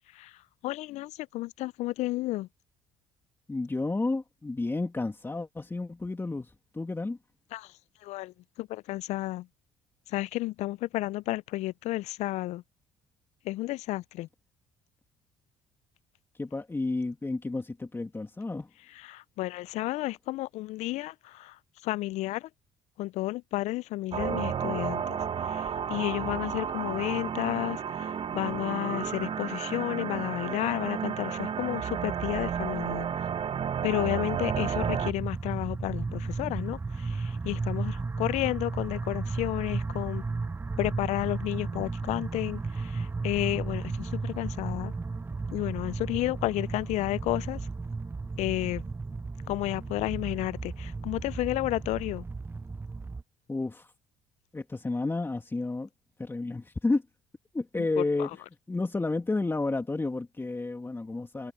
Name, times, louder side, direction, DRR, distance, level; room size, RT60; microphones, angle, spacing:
voice 1, 0.1-2.5 7.5-9.5 10.1-12.6 13.4-14.3 18.9-22.5 23.0-25.2 25.4-33.3 33.8-40.2 40.8-44.9 45.5-47.7 48.4-48.9 49.5-52.2 57.8-58.3, left 17 dB, 65° left, 0.5 m, -32 dB
voice 2, 3.5-7.2 16.3-18.7 53.5-53.9 54.5-55.9 56.2-57.0 57.5-58.3 58.7-61.5, left 3 dB, 20° left, 2.7 m, -31 dB
sound 1, 24.1-35.1, right 7 dB, 45° right, 1.4 m, -32 dB
sound 2, 34.4-53.2, right 3 dB, 15° right, 0.5 m, -34 dB
hypercardioid pair, 60°, 13 cm